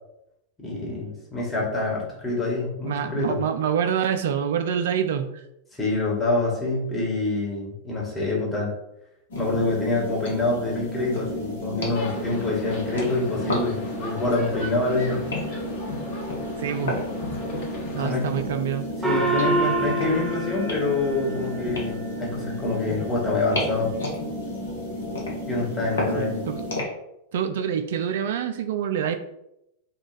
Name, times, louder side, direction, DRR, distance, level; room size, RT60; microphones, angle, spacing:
voice 1, 0.6-3.4 5.7-8.7 9.4-15.2 18.0-18.3 19.0-23.9 25.4-26.4, left 2 dB, 10° left, -5 dB, 1.3 m, -26 dB
voice 2, 2.8-5.3 16.6-17.0 17.9-18.9 26.1-26.6 27.3-29.1, right 8 dB, 55° right, 8 dB, 0.4 m, -26 dB
sound 1, 9.3-26.8, left 1 dB, 70° left, 0.9 m, -31 dB
sound 2, 11.9-18.2, left 1 dB, 50° left, 1.0 m, -38 dB
Gong, 19.0-21.9, right 2 dB, 10° right, 0.6 m, -27 dB
3.0 x 2.3 x 3.9 m, 0.83 s
figure-of-eight pair, 90°, 0 cm